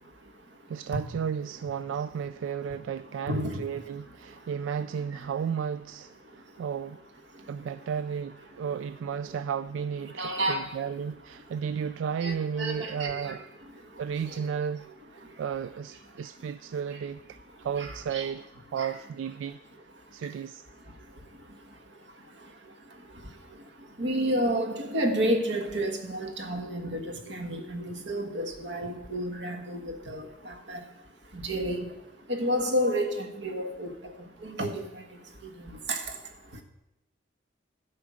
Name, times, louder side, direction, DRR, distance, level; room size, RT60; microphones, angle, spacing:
voice 1, 0.0-0.7 3.2-4.0 4.2-4.5 5.1-5.3 6.2-6.6 7.3-7.7 9.3-9.4 10.1-10.8 11.4-11.5 12.2-14.4 15.2-15.4 16.1-16.5 16.9-17.0 17.5-18.3 18.7-18.9 20.0-20.3 20.8-36.6, equal, 70° right, 1.4 m, -33 dB
voice 2, 0.7-7.0 7.5-13.4 14.0-14.9 15.4-18.4 18.7-19.6 20.1-20.6, right 7 dB, 90° right, 0.3 m, -33 dB
11.5 x 5.2 x 7.4 m
head